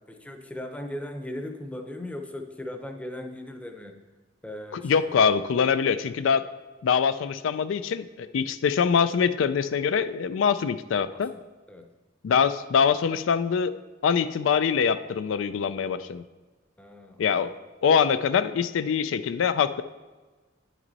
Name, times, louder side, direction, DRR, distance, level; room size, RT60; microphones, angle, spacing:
voice 1, 0.1-4.0 4.4-5.1 11.1-11.4 11.7-11.9 16.8-17.5, left 1 dB, 5° left, 5 dB, 0.7 m, -38 dB
voice 2, 4.7-6.4 6.8-11.3 12.2-13.7 14.0-16.2 17.2-17.5 17.8-19.8, left 6 dB, 85° left, 12 dB, 0.4 m, -24 dB
9.2 x 6.1 x 4.0 m, 1.3 s
head